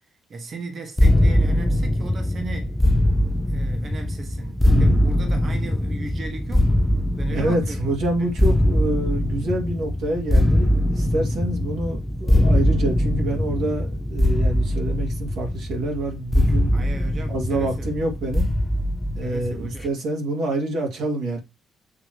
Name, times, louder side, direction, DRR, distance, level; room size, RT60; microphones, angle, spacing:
voice 1, 0.3-2.8 3.5-6.9 7.2-8.3 16.7-17.9 19.2-19.9, right 3 dB, 45° right, 1.5 m, -37 dB
sound 1, 1.0-19.9, left 1 dB, 15° left, 0.6 m, -21 dB
voice 2, 4.7-5.0 7.3-16.7 17.3-18.5 19.1-21.4, right 2 dB, 80° right, 2.2 m, -27 dB
7.4 x 3.1 x 4.6 m
cardioid pair, 90°, 0 cm